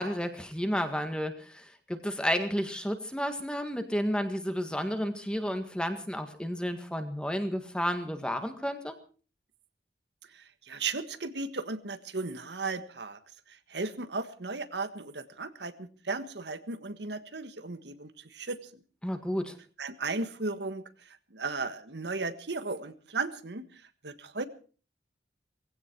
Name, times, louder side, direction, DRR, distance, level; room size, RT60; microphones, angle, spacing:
voice 1, 0.0-8.9 19.0-19.6, equal, 5° left, 7 dB, 1.8 m, -31 dB
voice 2, 10.3-13.2 13.5-18.7 19.8-24.5, right 3 dB, 75° right, 11 dB, 1.5 m, -36 dB
19.0 x 16.5 x 4.7 m, 0.39 s
head